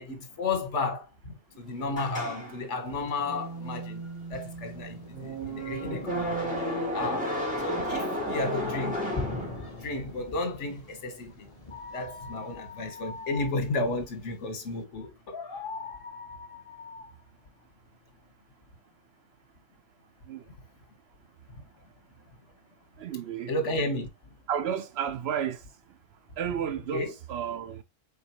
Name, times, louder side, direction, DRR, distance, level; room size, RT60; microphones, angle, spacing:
voice 1, 0.0-4.0 4.3-7.3 7.6-9.0 9.8-11.5 11.9-15.3 23.5-24.1 26.9-27.1, left 2 dB, 70° left, 1.5 m, -33 dB
sound 1, 1.9-10.0, equal, 5° right, 1.8 m, -33 dB
Thunder, 2.9-14.8, left 2 dB, 30° left, 1.0 m, -44 dB
sound 2, 11.7-18.3, left 4 dB, 50° left, 1.1 m, -43 dB
voice 2, 23.0-23.5 24.5-25.6 26.4-27.8, right 9 dB, 65° right, 0.7 m, -32 dB
4.6 x 3.9 x 2.9 m
omnidirectional pair, 1.3 m